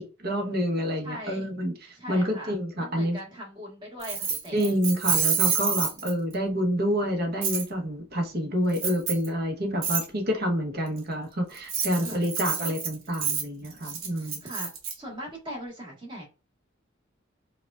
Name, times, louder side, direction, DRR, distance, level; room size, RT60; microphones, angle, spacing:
voice 1, 0.0-3.2 4.5-14.4, equal, 50° right, 1.0 m, -28 dB
voice 2, 1.0-1.5 1.9-4.7 12.0-12.3 12.6-12.7 14.2-14.7 14.9-16.3, equal, 25° right, 1.4 m, -40 dB
Keys jangling, 4.0-6.3 7.4-7.6 8.7-9.3 9.8-10.0 11.5-14.9, right 7 dB, 75° right, 1.0 m, -28 dB
4.7 x 2.4 x 2.3 m
head